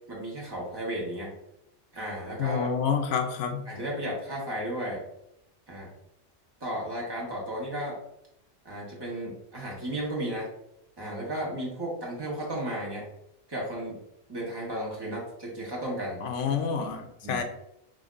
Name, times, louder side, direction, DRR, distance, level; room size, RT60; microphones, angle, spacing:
voice 1, 0.1-1.3 1.9-2.7 3.7-5.0 5.7-5.9 6.6-8.0 8.6-10.5 11.0-13.1 13.5-14.0 14.3-16.2 17.2-17.4, right 1 dB, 20° right, -3 dB, 1.1 m, -34 dB
voice 2, 2.4-3.7 16.2-17.4, left 6 dB, 75° left, 5 dB, 0.9 m, -28 dB
6.2 x 2.6 x 2.4 m, 0.80 s
omnidirectional pair, 1.3 m